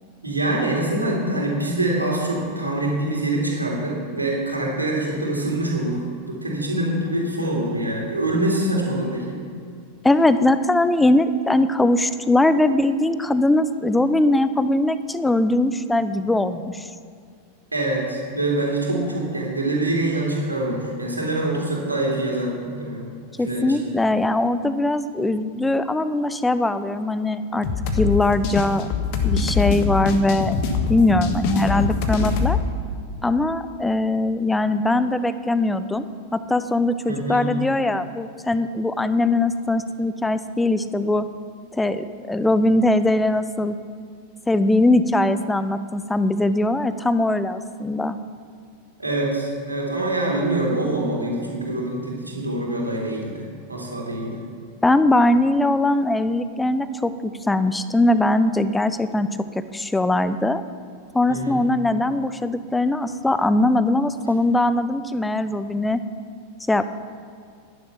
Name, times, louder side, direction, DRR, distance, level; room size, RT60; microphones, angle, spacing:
voice 1, 0.2-6.0 6.2-9.4 17.7-23.0 23.4-23.8 37.1-37.5 49.0-54.4 61.3-61.6, right 1 dB, 85° right, -2 dB, 3.5 m, -25 dB
voice 2, 10.0-16.9 23.4-27.7 27.9-28.9 29.2-30.6 30.9-32.6 33.2-36.0 36.3-41.3 41.8-43.7 44.5-48.2 54.8-59.3 59.5-60.6 61.1-66.0 66.7-66.8, left 2 dB, 5° left, 13 dB, 0.7 m, -21 dB
sound 1, 27.6-32.6, left 5 dB, 45° left, 1.7 m, -23 dB
15.0 x 11.0 x 5.8 m, 2.3 s
figure-of-eight pair, 90°, 0 cm